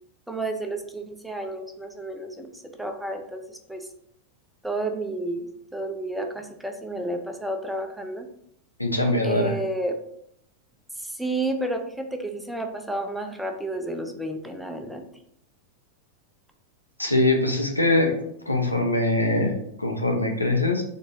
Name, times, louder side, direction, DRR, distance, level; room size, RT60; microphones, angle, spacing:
voice 1, 0.3-3.8 4.6-8.3 9.2-10.0 11.0-15.0, right 1 dB, 5° right, 4 dB, 0.6 m, -31 dB
voice 2, 8.8-9.5 17.0-18.1 18.5-20.8, left 2 dB, 85° left, 2 dB, 0.8 m, -22 dB
4.1 x 3.5 x 3.7 m, 0.72 s
figure-of-eight pair, 90°, 0 cm